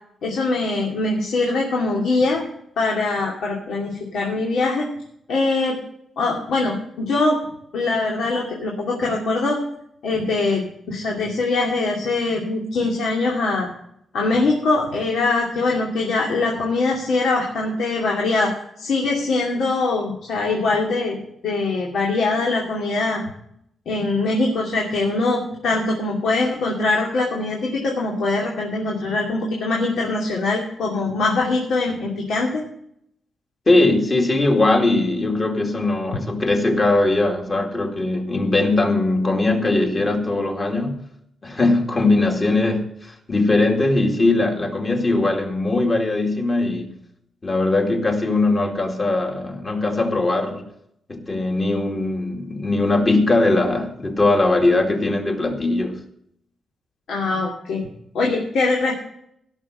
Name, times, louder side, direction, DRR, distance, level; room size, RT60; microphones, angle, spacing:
voice 1, 0.2-2.4 2.8-4.9 5.3-5.8 6.2-7.4 7.7-9.6 10.0-13.7 14.1-23.2 23.9-32.6 57.1-57.8 58.1-58.9, left 3 dB, 75° left, -2 dB, 2.6 m, -22 dB
voice 2, 33.7-41.0 41.4-46.9 47.4-50.7 51.1-56.0, left 2 dB, 25° left, 2 dB, 2.3 m, -20 dB
16.5 x 6.5 x 6.6 m, 0.72 s
wide cardioid pair, 155°, 0 cm